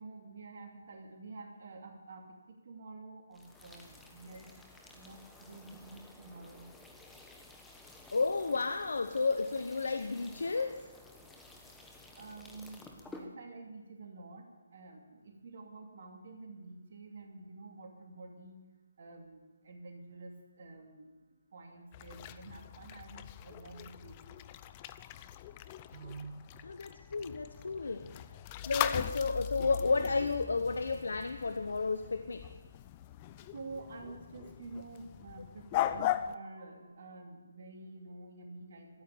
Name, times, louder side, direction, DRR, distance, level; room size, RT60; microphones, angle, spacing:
voice 1, 0.0-4.6 4.9-6.7 12.2-14.4 14.7-18.6 19.0-21.1 21.5-24.4 25.9-26.4 33.5-39.0, right 3 dB, 55° right, 2 dB, 2.6 m, -49 dB
sound 1, 3.3-13.3, left 2 dB, 5° left, 1.2 m, -54 dB
voice 2, 8.1-10.9 26.6-28.1 28.7-32.5, left 4 dB, 70° left, 9 dB, 0.8 m, -32 dB
sound 2, 21.9-36.4, left 12 dB, 25° left, 0.5 m, -40 dB
13.5 x 9.1 x 9.9 m, 1.2 s
figure-of-eight pair, 150°, 0 cm